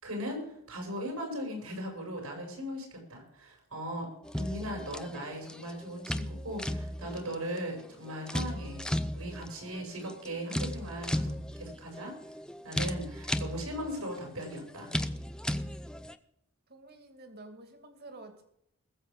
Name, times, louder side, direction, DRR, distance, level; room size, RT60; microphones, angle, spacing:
voice 1, 0.0-4.1 4.4-8.9 9.1-11.3 11.6-12.1 12.6-14.9, equal, 90° right, 2 dB, 6.4 m, -38 dB
sound 1, 4.2-16.1, left 1 dB, 5° left, 0.6 m, -36 dB
voice 2, 16.7-18.4, right 2 dB, 50° right, 6 dB, 2.4 m, -49 dB
20.0 x 7.8 x 5.3 m, 0.76 s
head